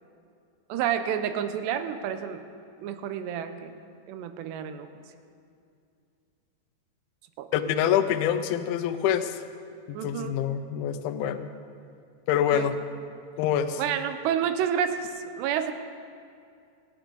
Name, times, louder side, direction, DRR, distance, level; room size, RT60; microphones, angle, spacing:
voice 1, 0.7-2.4 2.8-3.7 4.1-4.9 7.4-7.5 9.9-10.4 12.5-12.7 13.8-15.7, right 9 dB, 85° right, 9 dB, 2.7 m, -29 dB
voice 2, 7.5-9.4 9.9-11.5 12.3-12.8 13.4-13.8, left 9 dB, 80° left, 8 dB, 2.2 m, -26 dB
27.0 x 10.0 x 3.9 m, 2.4 s
omnidirectional pair, 5.1 m